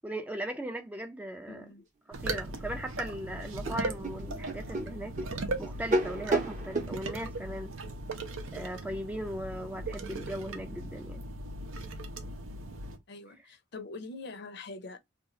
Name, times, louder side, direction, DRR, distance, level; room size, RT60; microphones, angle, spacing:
voice 1, 0.0-1.7 2.2-5.1 5.6-7.7 8.5-11.2, right 1 dB, 10° right, 0.3 m, -38 dB
voice 2, 1.5-1.9 13.1-15.0, left 3 dB, 55° left, 0.6 m, -44 dB
sound 1, 2.1-13.0, right 2 dB, 85° right, 0.6 m, -38 dB
sound 2, 3.1-3.2 3.6-6.9, right 2 dB, 35° right, 0.7 m, -31 dB
2.7 x 2.3 x 3.7 m
head